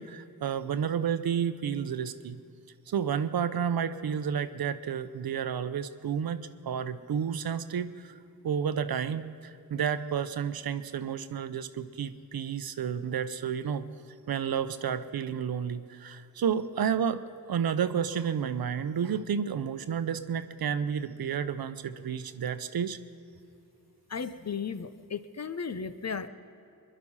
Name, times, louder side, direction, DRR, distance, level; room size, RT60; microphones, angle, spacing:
voice 1, 0.0-2.4 2.9-8.2 8.4-13.8 14.3-17.2 17.5-23.0, right 7 dB, 80° right, 12 dB, 0.7 m, -31 dB
voice 2, 24.1-26.3, left 6 dB, 45° left, 12 dB, 0.8 m, -35 dB
21.5 x 11.0 x 5.6 m, 2.6 s
cardioid pair, 45°, 36 cm